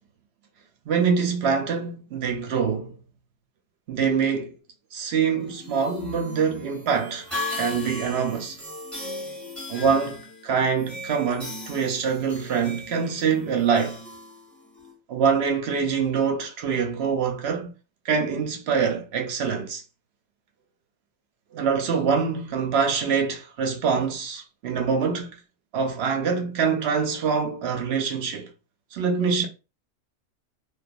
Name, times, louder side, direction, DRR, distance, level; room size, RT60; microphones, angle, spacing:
voice 1, 0.9-2.9 3.9-4.5 4.9-8.6 9.7-14.0 15.1-17.7 18.0-19.8 21.5-25.3 25.7-28.5 28.9-29.5, right 6 dB, 65° right, 0.7 m, -25 dB
sound 1, 5.4-14.9, left 2 dB, ahead, 0.8 m, -37 dB
2.4 x 2.3 x 2.4 m
omnidirectional pair, 1.4 m